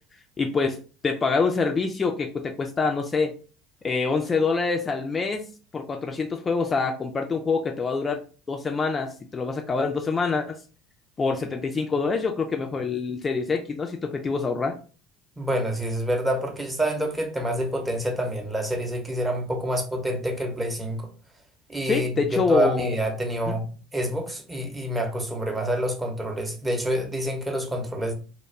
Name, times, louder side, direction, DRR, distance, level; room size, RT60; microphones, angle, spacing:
voice 1, 0.4-0.8 1.0-3.3 3.8-5.5 5.7-8.2 8.5-10.6 11.2-14.8 21.8-22.9 23.5-23.6, left 4 dB, 30° left, 0.3 m, -25 dB
voice 2, 15.4-21.1 21.7-23.6 23.9-28.1, right 1 dB, 15° right, 0.7 m, -27 dB
2.3 x 2.1 x 3.0 m
hypercardioid pair, 70°, 0 cm